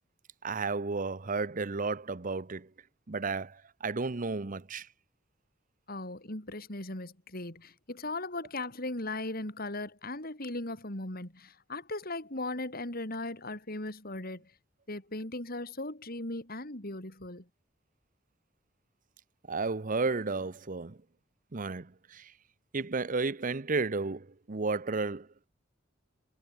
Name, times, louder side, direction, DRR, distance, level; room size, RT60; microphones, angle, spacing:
voice 1, 0.4-2.7 3.1-4.9 19.5-21.0 21.5-22.3 22.7-25.3, right 3 dB, 45° right, 0.8 m, -33 dB
voice 2, 5.9-14.5 14.9-17.5, left 2 dB, 50° left, 4.6 m, -38 dB
head